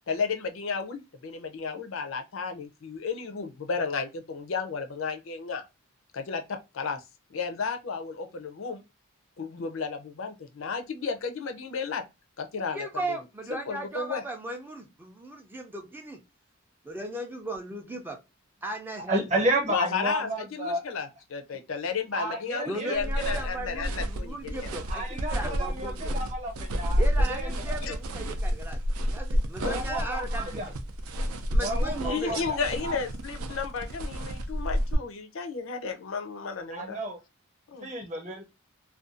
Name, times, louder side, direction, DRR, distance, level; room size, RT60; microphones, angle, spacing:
voice 1, 0.1-5.6 6.1-7.0 7.3-8.8 9.4-12.0 12.4-13.2 13.5-14.2 19.7-24.7 25.5-25.7 27.8-27.9 29.6-29.9 32.0-37.0 37.7-37.9, left 5 dB, 65° left, 0.5 m, -33 dB
voice 2, 12.7-16.2 16.8-18.2 18.6-19.5 22.7-26.2 27.0-28.8 29.1-30.6 31.5-32.4, right 1 dB, 10° right, 0.4 m, -37 dB
voice 3, 19.1-20.8 22.1-23.4 24.9-27.8 29.7-30.7 31.6-32.6 32.8-33.0 36.7-37.2 37.8-38.4, right 1 dB, 35° right, 0.8 m, -32 dB
sound 1, 22.9-34.9, equal, 80° right, 0.4 m, -30 dB
2.5 x 2.2 x 2.4 m
head